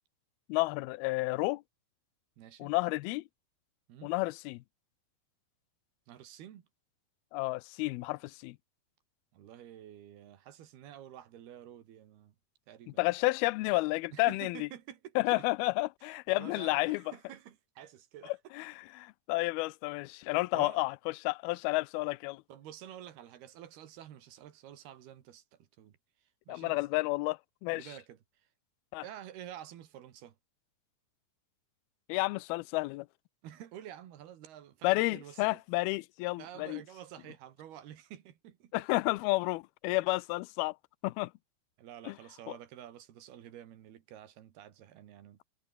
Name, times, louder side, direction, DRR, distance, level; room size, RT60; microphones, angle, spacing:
voice 1, 0.5-1.6 2.6-3.2 4.0-4.6 7.3-8.6 13.0-14.7 15.2-17.0 18.3-20.9 21.2-22.4 26.5-27.9 28.9-29.0 32.1-33.1 34.8-36.8 38.7-40.8 41.0-41.3 42.1-42.2, left 22 dB, 80° left, 2.5 m, -31 dB
voice 2, 2.4-2.7 3.9-4.1 6.1-6.7 9.3-12.4 12.7-13.1 14.1-15.5 16.3-18.3 20.5-20.8 22.5-26.0 26.5-26.8 27.7-28.2 29.0-30.4 33.4-35.6 36.4-38.7 41.8-45.4, right 11 dB, 75° right, 3.9 m, -49 dB
omnidirectional pair, 4.5 m